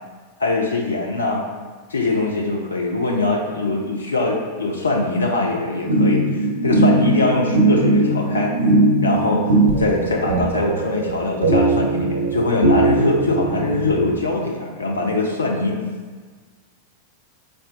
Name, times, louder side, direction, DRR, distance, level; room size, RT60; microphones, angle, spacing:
voice 1, 0.4-1.5 1.9-8.5 9.0-15.8, left 2 dB, 75° left, 0 dB, 0.4 m, -22 dB
sound 1, 5.9-14.1, right 2 dB, 70° right, 0.6 m, -19 dB
4.4 x 2.4 x 3.5 m, 1.5 s
figure-of-eight pair, 90°, 0 cm